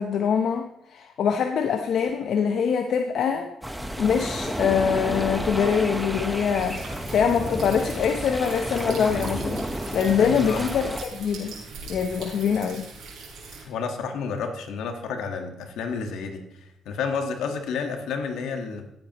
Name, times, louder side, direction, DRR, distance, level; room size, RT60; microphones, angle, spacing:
voice 1, 0.0-9.6 9.9-11.5 11.9-12.9, left 7 dB, 70° left, 5 dB, 0.7 m, -24 dB
sound 1, 3.6-11.0, right 1 dB, 5° right, 1.0 m, -31 dB
sound 2, 6.6-13.6, right 4 dB, 80° right, 4.5 m, -41 dB
voice 2, 10.2-10.6 13.7-16.4 16.8-18.8, left 5 dB, 85° left, 5 dB, 1.5 m, -30 dB
16.5 x 8.0 x 3.0 m, 0.80 s
cardioid pair, 90°, 0 cm